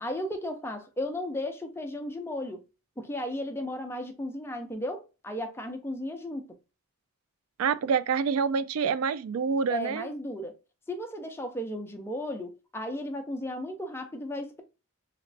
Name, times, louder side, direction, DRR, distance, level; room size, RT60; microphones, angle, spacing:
voice 1, 0.0-2.6 3.0-6.5 9.7-10.6 10.9-14.6, left 1 dB, 10° left, 0.5 m, -35 dB
voice 2, 7.6-10.1, right 6 dB, 85° right, 0.3 m, -27 dB
3.2 x 3.0 x 2.6 m
head